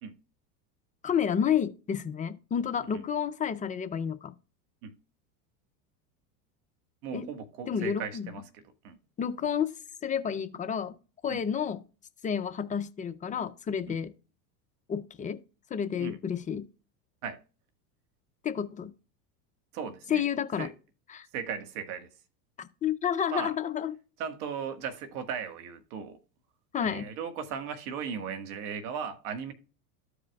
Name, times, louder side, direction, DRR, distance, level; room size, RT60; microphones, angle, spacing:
voice 1, 1.0-4.3 7.1-7.3 7.7-8.2 9.2-9.7 10.0-10.9 11.2-11.8 12.2-14.1 14.9-15.4 15.7-16.7 18.4-18.9 20.1-20.7 21.1-21.3 22.6-23.9 26.7-27.1, left 8 dB, 15° left, 0.4 m, -30 dB
voice 2, 7.0-9.0 11.3-11.4 13.9-14.0 16.0-16.2 17.2-17.4 19.7-20.2 20.6-20.7 21.3-22.1 23.3-23.5 24.2-26.2 26.8-29.5, right 7 dB, 70° right, 1.5 m, -37 dB
13.5 x 5.0 x 2.3 m
supercardioid pair, 115°, 47 cm